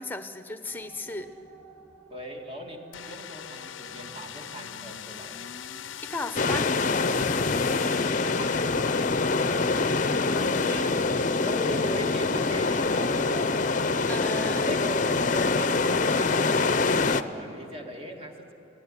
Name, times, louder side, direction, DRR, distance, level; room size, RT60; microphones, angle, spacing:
voice 1, 0.0-1.3 6.0-6.7 14.1-14.7, left 2 dB, 10° left, 9 dB, 0.9 m, -35 dB
sound 1, 0.7-9.6, right 3 dB, 10° right, 2.4 m, -53 dB
voice 2, 2.1-5.4 7.8-8.5 9.9-11.1 11.4-13.6 14.7-18.5, equal, 30° right, 2 dB, 2.3 m, -39 dB
sound 2, 2.9-9.8, left 8 dB, 90° left, 0.6 m, -40 dB
sound 3, 6.4-17.2, left 3 dB, 40° left, 0.7 m, -25 dB
22.5 x 17.0 x 9.9 m, 2.7 s
head